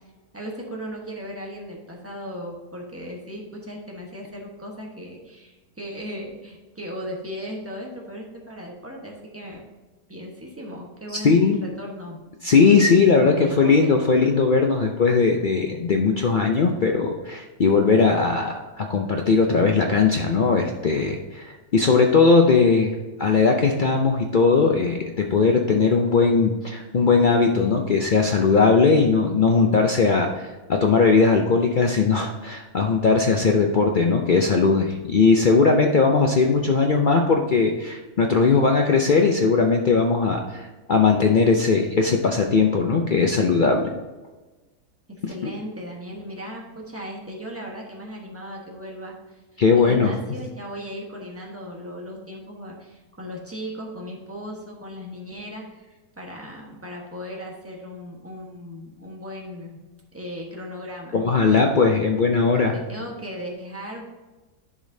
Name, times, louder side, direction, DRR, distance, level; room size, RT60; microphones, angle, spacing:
voice 1, 0.3-9.7 10.1-12.2 13.4-14.0 45.1-59.8 60.1-61.7 62.7-64.0, equal, 10° right, -2 dB, 1.1 m, -37 dB
voice 2, 11.2-11.6 12.4-22.9 23.2-43.9 45.4-45.5 49.6-50.1 61.1-62.7, left 4 dB, 75° left, 2 dB, 0.4 m, -19 dB
11.0 x 5.1 x 2.7 m, 1.2 s
omnidirectional pair, 1.6 m